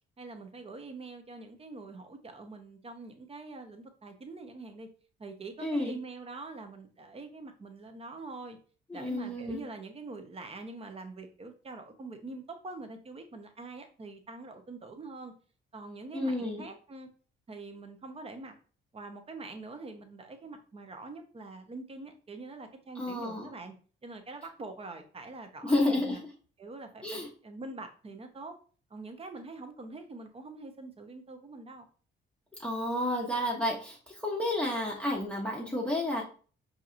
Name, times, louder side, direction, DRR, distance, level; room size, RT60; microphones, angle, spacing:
voice 1, 0.2-4.9 5.2-8.6 8.9-15.3 15.7-17.1 17.5-18.6 18.9-23.7 24.0-26.2 26.6-28.5 28.9-31.8, right 3 dB, 30° right, 6 dB, 0.8 m, -44 dB
voice 2, 5.6-6.0 8.9-9.6 16.1-16.6 22.9-23.5 25.6-26.2 27.0-27.3 32.6-36.2, left 1 dB, 5° left, -4 dB, 0.9 m, -31 dB
4.6 x 2.8 x 2.5 m, 0.39 s
cardioid pair, 90°, 20 cm